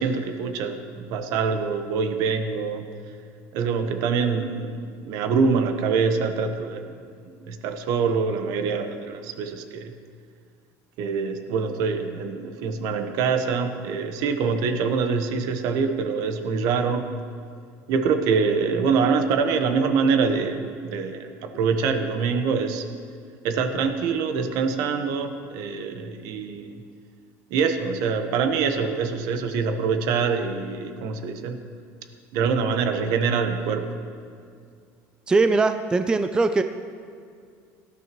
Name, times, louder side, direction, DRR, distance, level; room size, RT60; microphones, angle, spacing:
voice 1, 0.0-2.8 3.5-6.8 7.2-9.9 11.0-17.1 17.9-22.8 23.4-26.8 27.5-31.6 32.3-33.9, right 5 dB, 65° right, 7 dB, 1.1 m, -25 dB
voice 2, 35.3-36.6, right 3 dB, 10° right, 9 dB, 0.4 m, -20 dB
18.0 x 13.0 x 3.1 m, 2.2 s
cardioid pair, 150°, 7 cm